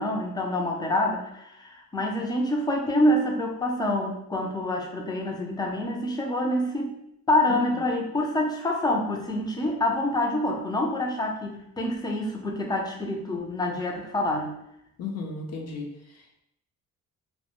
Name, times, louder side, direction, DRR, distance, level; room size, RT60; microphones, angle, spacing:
voice 1, 0.0-7.0 7.3-14.6, left 1 dB, 15° left, 0 dB, 0.4 m, -26 dB
voice 2, 15.0-16.4, left 4 dB, 55° left, 1 dB, 0.6 m, -35 dB
2.1 x 2.0 x 2.9 m, 0.78 s
cardioid pair, 90°, 30 cm